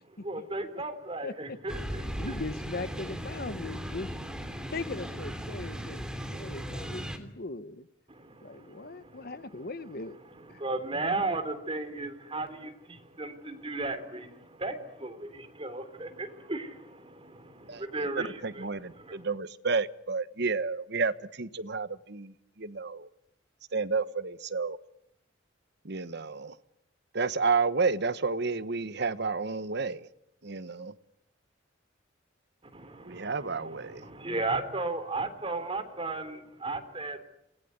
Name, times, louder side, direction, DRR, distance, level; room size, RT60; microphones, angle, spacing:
voice 1, 0.2-2.3 8.1-9.6 10.5-19.3 32.7-37.2, right 2 dB, 30° right, 3.5 m, -36 dB
voice 2, 1.2-1.6 2.0-4.1 4.7-7.9 8.4-10.2 10.5-10.6 10.9-11.0, left 3 dB, 55° left, 1.2 m, -39 dB
sound 1, 1.7-7.2, equal, 5° right, 3.1 m, -37 dB
voice 3, 18.2-23.1 23.7-24.8 25.8-26.6 27.1-30.1 30.4-30.9 33.1-34.0, right 4 dB, 60° right, 1.3 m, -31 dB
28.5 x 19.5 x 9.5 m
head